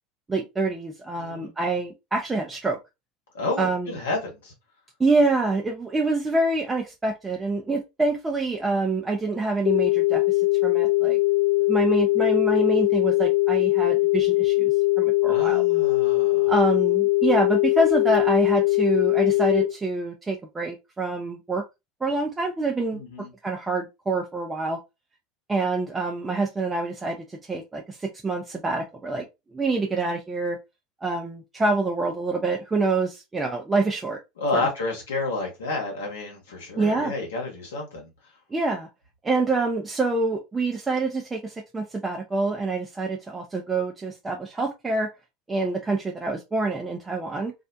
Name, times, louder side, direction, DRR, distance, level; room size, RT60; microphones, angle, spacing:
voice 1, 0.3-2.8 3.6-3.9 5.0-10.2 10.6-11.2 11.7-15.6 16.5-21.6 22.0-23.0 23.4-24.8 25.5-29.2 29.5-30.6 31.0-34.2 34.5-34.7 36.8-37.1 38.5-38.9 39.2-45.1 45.5-47.5, right 3 dB, 20° right, 0.5 m, -26 dB
voice 2, 1.2-1.5 3.3-4.5 15.3-16.5 22.9-23.3 34.4-38.1, left 2 dB, 75° left, 1.0 m, -30 dB
sound 1, 9.7-19.7, left 21 dB, 40° left, 0.3 m, -21 dB
2.4 x 2.0 x 2.6 m
hypercardioid pair, 75°, 0 cm